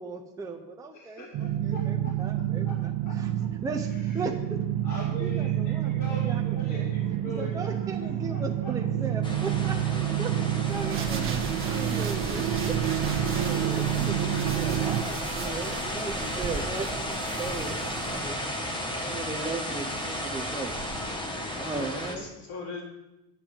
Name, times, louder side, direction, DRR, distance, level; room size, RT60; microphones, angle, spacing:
voice 1, 0.0-1.2 1.9-2.7 3.6-4.6 5.2-5.9 6.3-6.4 6.7-6.8 7.4-10.4 10.7-12.8 13.3-16.9 17.4-17.8 18.2-18.4 18.9-20.7 21.6-22.2, right 3 dB, 10° right, 2 dB, 0.6 m, -36 dB
voice 2, 0.9-2.7 3.0-3.5 3.8-4.3 4.8-9.0, equal, 40° left, -5 dB, 2.4 m, -42 dB
sound 1, 1.3-15.0, right 12 dB, 55° right, 0.9 m, -28 dB
sound 2, 9.2-22.2, equal, 10° left, 1.1 m, -34 dB
sound 3, 10.7-18.2, right 5 dB, 30° right, 1.3 m, -37 dB
voice 3, 19.8-20.3 21.7-22.8, left 3 dB, 60° left, -2 dB, 4.2 m, -41 dB
8.1 x 7.5 x 8.7 m, 0.96 s
cardioid pair, 170°, 45 cm